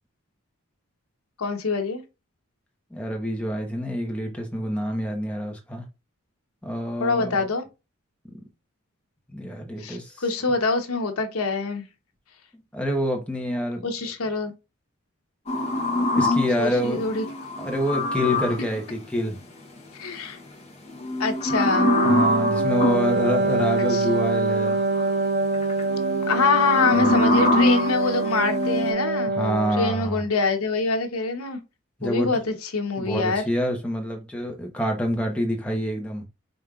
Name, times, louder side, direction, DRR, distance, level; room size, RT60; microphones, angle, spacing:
voice 1, 1.4-2.0 7.0-7.6 9.8-11.9 13.8-14.5 16.2-16.3 16.6-17.2 19.9-20.4 21.2-21.9 23.9-24.1 26.3-29.3 29.7-31.6 32.0-33.4, left 4 dB, 90° left, 1.0 m, -25 dB
voice 2, 2.9-5.8 6.6-7.5 9.3-10.2 12.7-13.8 16.1-17.0 17.6-19.4 22.0-24.8 26.9-27.6 29.3-30.2 32.0-32.3 33.0-36.2, equal, 5° left, 1.0 m, -27 dB
sound 1, 15.5-18.7 20.9-23.1 24.5-25.1 25.5-28.9, left 2 dB, 30° left, 0.9 m, -24 dB
Wind instrument woodwind instrument, 21.7-29.9, right 3 dB, 50° right, 0.6 m, -25 dB
5.1 x 3.6 x 2.4 m
head